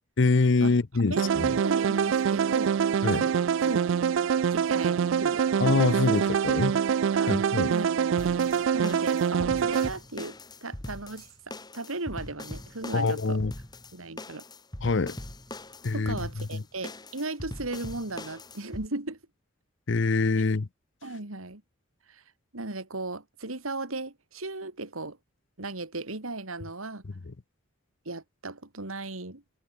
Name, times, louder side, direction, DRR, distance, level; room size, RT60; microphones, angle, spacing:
voice 1, 0.2-1.5 3.0-3.3 5.6-6.8 7.3-7.7 12.9-13.5 14.8-15.2 15.8-16.2 16.5-16.6 19.9-20.7, left 3 dB, 60° left, 0.7 m, -25 dB
voice 2, 1.1-2.8 3.1-3.3 3.6-3.8 4.5-5.4 6.1-6.2 6.7-6.8 7.1-7.3 7.7-8.0 8.3-11.3 11.7-13.4 13.9-14.4 15.9-19.2 21.0-21.6 22.1-22.2 22.5-25.2 25.6-27.0 28.0-29.4, right 2 dB, 90° right, 2.9 m, -36 dB
sound 1, 1.2-9.9, right 7 dB, 65° right, 0.3 m, -25 dB
sound 2, 8.2-18.9, left 1 dB, 20° left, 2.1 m, -41 dB
head